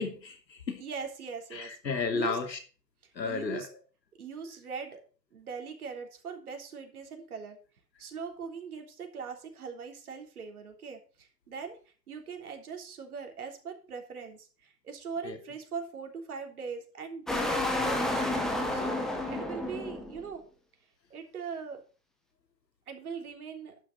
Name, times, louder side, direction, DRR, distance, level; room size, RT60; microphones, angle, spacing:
voice 1, 0.0-0.8 1.5-2.6 3.1-3.7 15.2-15.4, left 4 dB, 80° left, 6 dB, 2.9 m, -33 dB
voice 2, 0.8-1.8 2.1-2.4 3.2-3.7 4.2-5.0 5.3-7.6 8.0-11.8 12.1-20.5 21.1-21.8 22.9-23.8, right 6 dB, 60° right, 4 dB, 3.5 m, -41 dB
sound 1, 17.3-20.3, left 1 dB, ahead, 1.0 m, -30 dB
11.0 x 6.6 x 5.9 m, 0.37 s
hypercardioid pair, 140°, 50 cm